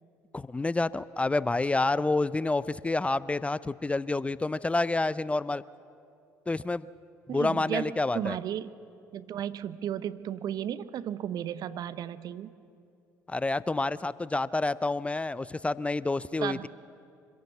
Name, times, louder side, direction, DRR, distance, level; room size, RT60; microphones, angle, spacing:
voice 1, 0.3-5.6 6.5-6.9 7.3-8.4 13.3-16.7, left 2 dB, 15° left, 19 dB, 0.4 m, -28 dB
voice 2, 7.3-8.7 9.1-12.5 16.4-16.7, right 10 dB, 55° right, 14 dB, 0.8 m, -34 dB
25.0 x 16.5 x 7.1 m, 2.6 s
hypercardioid pair, 55°, 8 cm